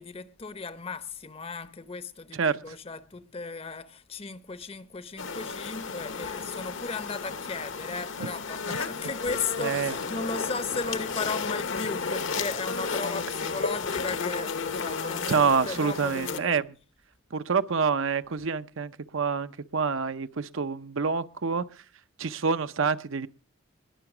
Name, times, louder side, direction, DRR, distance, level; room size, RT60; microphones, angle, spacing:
voice 1, 0.0-16.6, left 4 dB, 25° left, 0.7 m, -36 dB
sound 1, 5.2-16.4, left 5 dB, 65° left, 0.9 m, -33 dB
voice 2, 9.6-9.9 15.3-16.6 17.3-21.6 22.2-23.3, right 5 dB, 70° right, 0.6 m, -27 dB
20.5 x 6.9 x 6.0 m
head